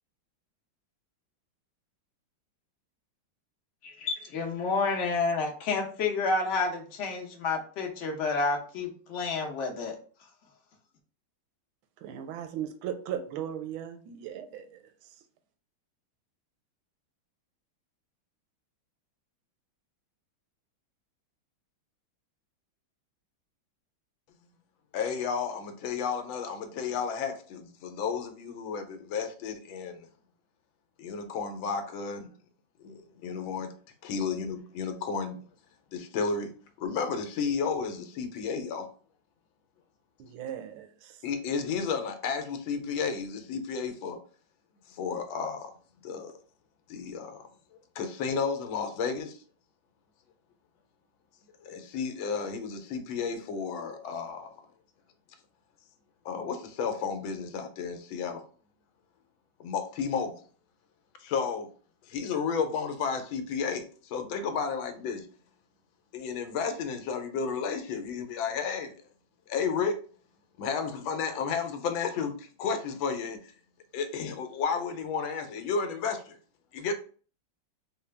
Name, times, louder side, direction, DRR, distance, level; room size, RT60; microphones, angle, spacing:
voice 1, 3.8-9.9, left 4 dB, 60° left, 0.7 m, -30 dB
voice 2, 12.0-14.8 40.2-41.1, right 9 dB, 85° right, 1.4 m, -37 dB
voice 3, 24.9-30.1 31.0-32.3 32.8-33.7 34.0-35.4 35.9-36.5 36.8-38.9 41.2-44.2 44.9-45.7 46.0-46.3 46.9-47.5 47.9-49.4 51.6-54.5 56.2-58.4 59.6-60.4 61.2-61.7 62.1-65.3 66.1-69.0 69.5-70.0 70.6-73.4 73.9-76.4 76.7-76.9, left 5 dB, 80° left, 1.4 m, -32 dB
4.0 x 2.2 x 3.3 m
omnidirectional pair, 2.2 m